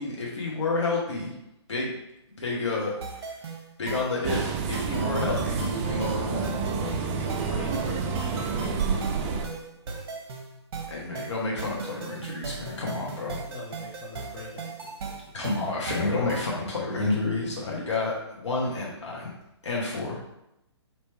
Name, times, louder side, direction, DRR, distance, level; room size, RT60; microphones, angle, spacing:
voice 1, 0.0-1.3 1.7-1.9 2.4-3.3 3.8-6.5 10.9-13.4 15.3-19.3 19.6-20.2, left 3 dB, 80° left, -4 dB, 1.2 m, -30 dB
sound 1, 3.0-16.6, right 4 dB, 55° right, 0.9 m, -38 dB
sound 2, 4.2-9.5, right 5 dB, 25° right, 0.4 m, -29 dB
voice 2, 4.9-5.6 6.8-9.5 13.5-15.2, left 3 dB, 25° left, -7 dB, 0.8 m, -41 dB
3.5 x 2.9 x 4.4 m, 0.86 s
hypercardioid pair, 135°, 15 cm